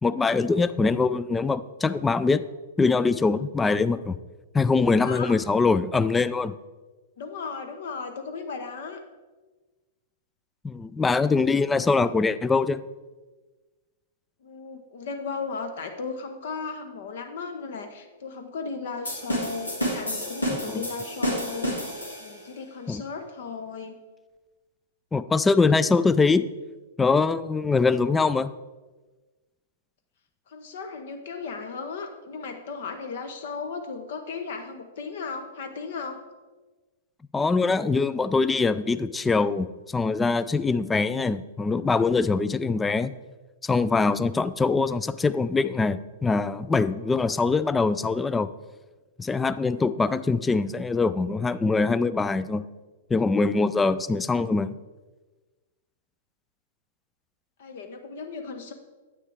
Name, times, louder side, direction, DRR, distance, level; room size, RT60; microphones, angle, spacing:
voice 1, 0.0-2.4 2.8-4.2 4.5-6.5 10.6-12.8 20.7-20.8 22.9-23.0 25.1-26.4 27.0-28.5 37.3-43.2 43.6-48.5 49.2-52.6 53.1-54.8, left 4 dB, 10° left, 14 dB, 0.3 m, -23 dB
voice 2, 5.0-5.4 7.2-9.0 14.4-21.9 22.2-24.0 30.5-36.2 57.6-58.7, left 5 dB, 55° left, 7 dB, 0.8 m, -35 dB
sound 1, 19.1-22.5, equal, 85° left, 2.4 m, -30 dB
9.8 x 8.6 x 3.4 m, 1.3 s
figure-of-eight pair, 105°, 0 cm